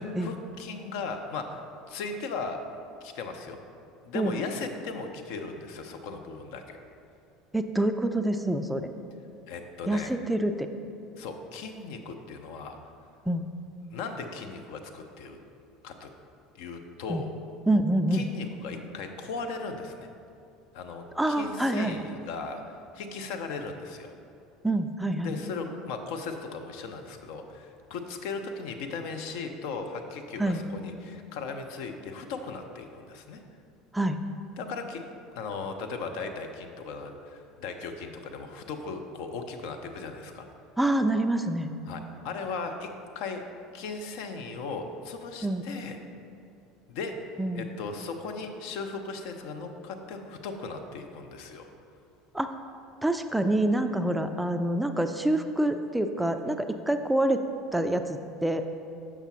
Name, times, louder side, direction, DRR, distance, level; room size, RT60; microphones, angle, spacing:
voice 1, 0.0-1.6 1.9-2.6 3.0-3.6 4.0-6.8 9.5-10.1 11.2-12.8 13.9-15.4 15.8-16.1 16.6-17.3 18.1-20.1 20.7-22.6 22.9-24.1 25.2-33.4 34.6-35.0 35.4-40.4 41.9-42.9 43.1-43.4 43.7-46.0 46.9-47.2 47.5-51.7, left 4 dB, 60° left, 5 dB, 0.5 m, -37 dB
voice 2, 7.5-8.9 9.9-10.7 13.3-13.5 17.1-17.2 17.7-18.2 21.2-22.0 24.6-25.3 30.4-30.6 33.9-34.2 40.8-41.7 45.4-45.6 47.4-47.7 52.3-52.6 53.0-57.4 57.7-58.6, right 1 dB, 5° right, 7 dB, 0.3 m, -26 dB
6.7 x 5.8 x 3.0 m, 2.5 s
figure-of-eight pair, 70°, 0 cm